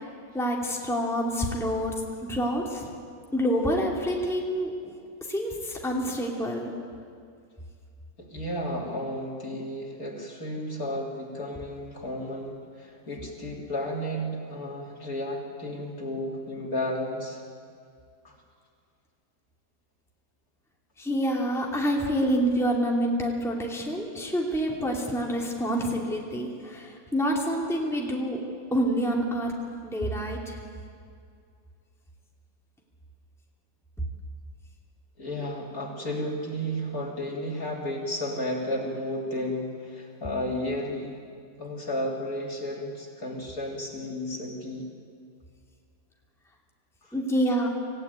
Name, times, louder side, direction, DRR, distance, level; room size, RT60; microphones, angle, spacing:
voice 1, 0.3-1.9 2.3-2.8 3.3-4.7 5.3-6.7 21.0-28.4 28.7-29.5 29.8-30.4 47.1-47.7, equal, ahead, -2 dB, 2.6 m, -27 dB
voice 2, 8.2-17.4 18.2-18.4 35.2-41.2 41.6-44.9 47.0-47.1, equal, 50° left, -2 dB, 3.7 m, -33 dB
26.5 x 15.5 x 9.4 m, 2.3 s
omnidirectional pair, 1.9 m